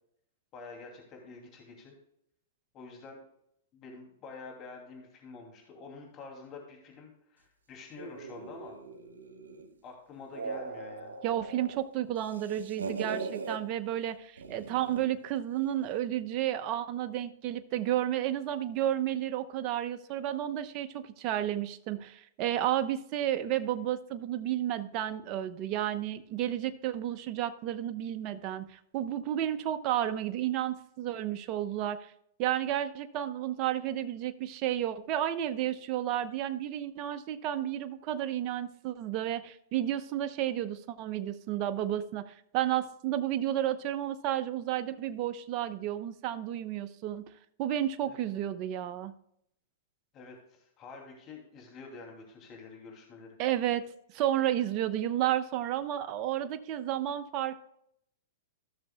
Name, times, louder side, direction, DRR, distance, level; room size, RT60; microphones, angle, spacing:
voice 1, 0.5-1.9 2.7-3.2 3.7-8.8 9.8-11.2 48.0-48.3 50.1-53.4, left 4 dB, 35° left, 1 dB, 2.6 m, -48 dB
sound 1, 8.0-9.7 10.1-11.8 12.1-13.6 14.4-15.1, right 4 dB, 85° right, 1.5 m, -40 dB
voice 2, 11.2-32.1 32.4-47.2 47.6-49.1 53.4-53.8 54.1-57.5, right 12 dB, 40° right, 10 dB, 0.8 m, -32 dB
15.0 x 6.7 x 2.3 m, 0.73 s
hypercardioid pair, 120°, 0 cm